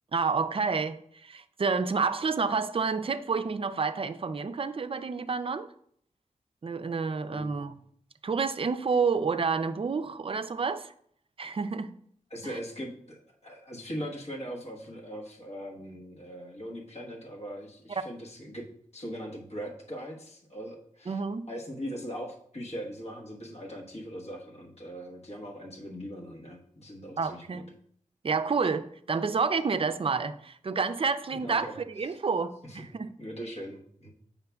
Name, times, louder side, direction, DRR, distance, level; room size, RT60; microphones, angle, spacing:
voice 1, 0.1-5.7 6.6-7.7 8.2-10.9 11.4-11.9 12.4-12.6 21.1-21.5 27.2-27.6 28.2-31.7 32.0-33.1, right 5 dB, 45° right, 11 dB, 0.4 m, -29 dB
voice 2, 7.3-7.7 12.3-18.7 18.9-21.2 21.5-27.6 31.4-31.8 32.0-32.2 32.7-32.8 33.2-34.1, equal, 55° left, -1 dB, 1.2 m, -40 dB
8.0 x 5.6 x 2.3 m, 0.66 s
wide cardioid pair, 100°, 13 cm